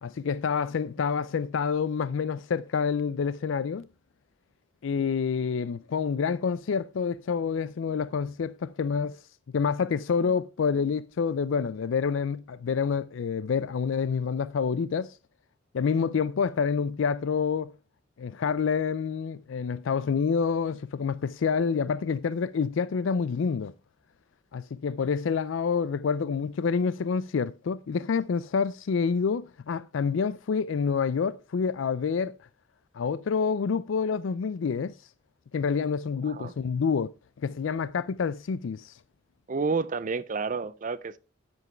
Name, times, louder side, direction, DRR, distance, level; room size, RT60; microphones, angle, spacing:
voice 1, 0.0-3.9 4.8-9.2 9.5-15.2 15.7-17.7 18.2-23.7 24.5-32.4 32.9-35.0 35.5-37.1 37.4-39.0, left 6 dB, 80° left, 0.4 m, -28 dB
voice 2, 39.5-41.2, right 4 dB, 40° right, 0.5 m, -30 dB
11.0 x 7.2 x 4.4 m
head